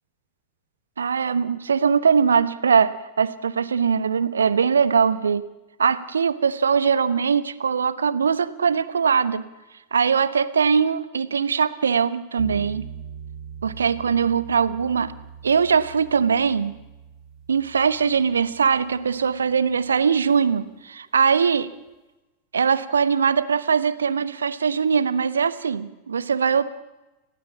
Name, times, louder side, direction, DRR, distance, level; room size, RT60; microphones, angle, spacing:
voice 1, 1.0-5.5 5.8-9.4 9.9-12.8 13.6-15.1 15.4-16.7 17.5-21.7 22.5-26.6, right 6 dB, 70° right, 15 dB, 1.1 m, -21 dB
sound 1, 12.4-20.5, right 8 dB, 35° right, 2.8 m, -42 dB
29.0 x 17.5 x 7.2 m, 1.1 s
figure-of-eight pair, 90°, 0 cm